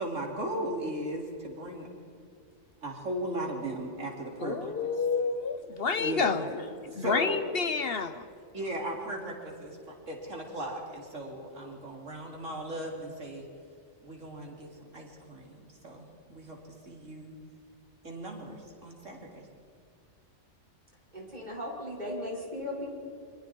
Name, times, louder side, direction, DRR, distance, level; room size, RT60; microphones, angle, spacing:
voice 1, 0.0-1.9 2.8-4.9 6.0-7.4 8.5-13.5 14.0-16.6 16.8-17.4 18.0-19.5, right 1 dB, 85° right, -1 dB, 4.1 m, -37 dB
voice 2, 4.4-6.4 7.0-8.2, left 5 dB, 55° left, 11 dB, 1.0 m, -29 dB
voice 3, 21.1-22.9, left 1 dB, 35° right, -3 dB, 5.7 m, -37 dB
29.0 x 24.5 x 4.6 m, 2.4 s
omnidirectional pair, 1.3 m